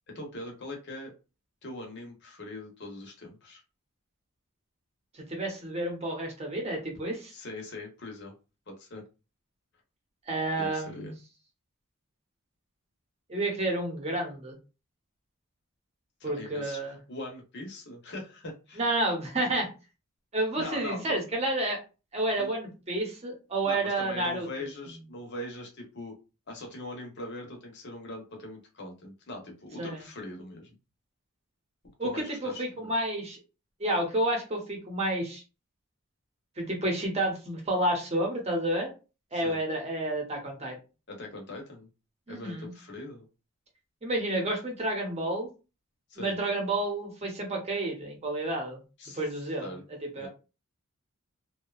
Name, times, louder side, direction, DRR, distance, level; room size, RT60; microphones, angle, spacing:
voice 1, 0.1-1.1 1.6-3.6 7.3-8.3 8.7-9.0 10.6-11.1 16.2-18.8 20.6-21.2 22.4-22.5 23.6-26.1 26.5-30.8 32.0-32.9 39.3-39.6 41.1-41.9 42.3-43.2 46.1-46.4 49.0-49.2 49.6-49.8 50.1-50.3, left 2 dB, 50° left, 1 dB, 0.8 m, -41 dB
voice 2, 5.3-7.3 10.3-11.1 13.3-14.6 16.2-17.0 18.8-19.7 20.3-21.8 22.1-24.5 29.8-30.0 32.0-33.4 33.8-35.4 36.6-38.9 39.3-40.7 42.3-42.7 44.0-45.5 46.2-48.8 49.1-49.7 50.2-50.3, right 1 dB, 30° right, 0 dB, 0.8 m, -30 dB
2.7 x 2.2 x 2.3 m, 0.32 s
head